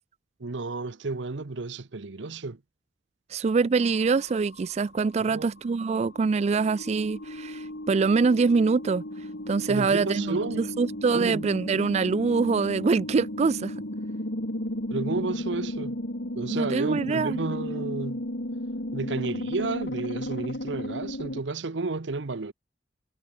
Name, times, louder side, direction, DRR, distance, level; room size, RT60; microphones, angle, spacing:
voice 1, 0.4-2.6 5.2-5.4 9.7-10.7 11.1-11.5 14.9-16.0 16.3-18.2 18.9-22.5, right 3 dB, 80° right, 0.9 m, -32 dB
voice 2, 3.3-9.0 9.5-10.4 10.8-13.7 16.5-17.4, right 4 dB, 35° right, 0.3 m, -24 dB
sound 1, 3.8-5.0 5.4-21.4, left 1 dB, 65° left, 3.5 m, -34 dB
head